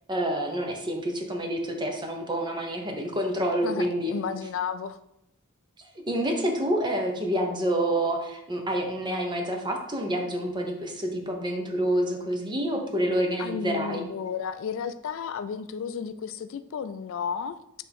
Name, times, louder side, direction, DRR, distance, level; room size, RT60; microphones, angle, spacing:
voice 1, 0.1-4.1 6.1-14.0, right 1 dB, 20° right, 2 dB, 0.9 m, -28 dB
voice 2, 3.6-5.0 13.4-17.6, left 6 dB, 60° left, 11 dB, 0.3 m, -33 dB
8.4 x 3.5 x 3.5 m, 0.81 s
head